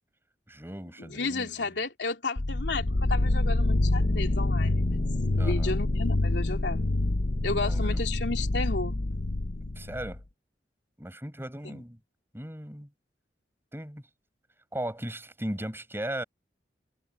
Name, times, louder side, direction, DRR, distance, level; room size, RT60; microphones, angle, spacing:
voice 1, 0.5-1.7 5.4-5.7 7.5-8.1 9.7-10.2 11.0-12.0 12.3-12.9 13.7-14.0 14.7-16.2, right 1 dB, 15° right, 6.3 m, -37 dB
voice 2, 1.0-4.8 5.3-6.9 7.4-9.0 11.6-11.8, left 3 dB, 80° left, 2.9 m, -33 dB
sound 1, 2.4-10.2, left 2 dB, 50° left, 0.8 m, -26 dB
head